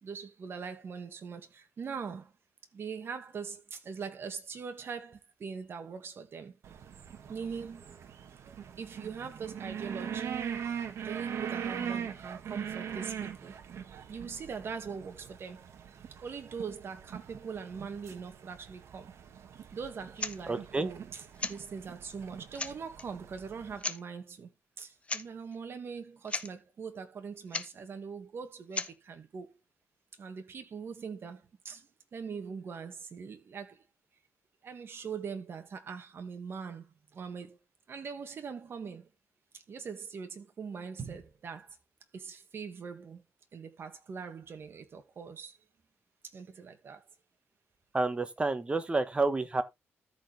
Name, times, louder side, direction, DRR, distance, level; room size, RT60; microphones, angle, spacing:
voice 1, 0.0-2.3 2.7-6.6 7.3-7.9 8.8-10.4 10.9-13.5 14.1-15.7 16.2-19.1 19.7-21.2 21.5-24.5 24.8-29.5 30.2-33.8 34.6-37.6 37.9-39.1 39.7-41.8 42.1-43.2 43.5-45.6 46.3-47.0, right 6 dB, 55° right, 2.0 m, -42 dB
sound 1, 6.6-23.8, right 8 dB, 70° right, 1.6 m, -41 dB
sound 2, 20.2-20.4 21.4-21.6 22.2-22.3 22.5-23.1 23.8-24.0 25.0-25.3 25.5-25.6 26.0-26.1 26.3-26.5 27.5-27.7 28.7-28.9, left 3 dB, 25° left, 0.8 m, -35 dB
voice 2, 20.5-20.9 47.9-49.6, right 3 dB, 20° right, 1.4 m, -29 dB
14.0 x 4.6 x 3.3 m
cardioid pair, 110°, 5 cm